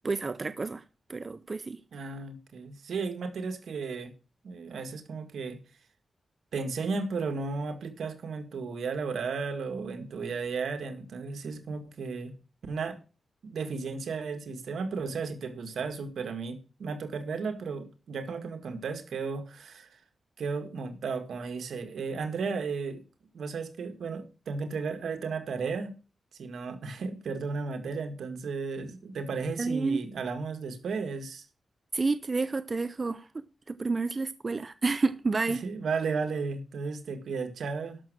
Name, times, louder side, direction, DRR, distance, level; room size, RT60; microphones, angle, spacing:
voice 1, 0.0-0.8 1.1-1.8 29.6-30.0 31.9-35.6, right 3 dB, 40° right, 0.6 m, -30 dB
voice 2, 1.9-4.1 4.4-5.6 6.5-12.3 12.7-13.0 13.4-20.0 20.4-23.0 23.3-26.0 26.4-31.5 35.5-38.0, right 4 dB, 80° right, 1.9 m, -34 dB
12.0 x 6.4 x 6.2 m
cardioid pair, 85°, 0 cm